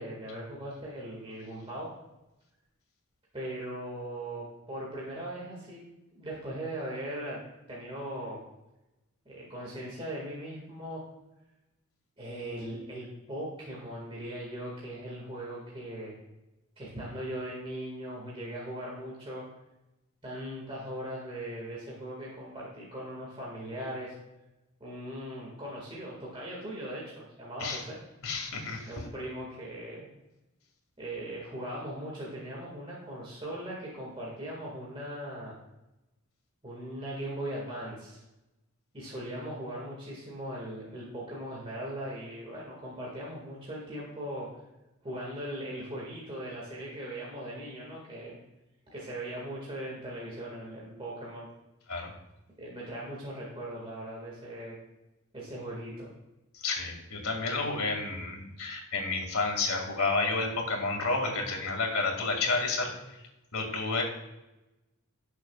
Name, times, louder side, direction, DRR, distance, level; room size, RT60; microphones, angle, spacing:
voice 1, 0.0-1.9 3.3-5.8 6.1-7.4 7.7-8.4 9.3-11.0 12.2-16.1 16.8-19.4 20.2-24.1 24.8-28.0 28.9-30.1 31.0-35.5 36.6-38.2 38.9-44.5 45.0-48.4 48.9-51.5 52.6-54.8 55.3-56.1, right 1 dB, 25° right, -5 dB, 2.1 m, -39 dB
voice 2, 28.2-28.9 51.9-52.1 56.6-62.9 63.5-64.0, left 3 dB, 70° left, 2 dB, 2.3 m, -30 dB
17.0 x 6.5 x 2.4 m, 0.98 s
head